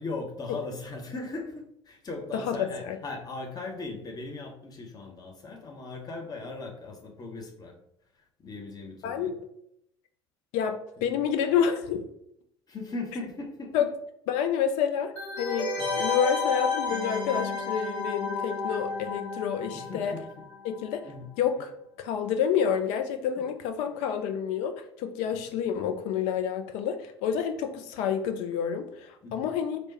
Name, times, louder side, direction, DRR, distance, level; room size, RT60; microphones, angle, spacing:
voice 1, 0.0-7.8 8.1-9.4 11.0-11.3 12.7-13.9 15.8-16.0 19.7-20.5 21.0-21.3 23.4-23.5 25.2-25.5 29.2-29.6, left 3 dB, 25° left, 2 dB, 0.8 m, -39 dB
voice 2, 2.5-3.0 9.0-9.3 10.5-12.0 13.7-13.9 14.3-20.2 20.6-21.1 21.4-21.7 22.0-29.8, left 8 dB, 55° left, 6 dB, 0.5 m, -29 dB
sound 1, 15.2-20.6 20.9-21.0, left 4 dB, 80° left, 0.9 m, -31 dB
3.3 x 2.1 x 3.9 m, 0.75 s
figure-of-eight pair, 60°, 15 cm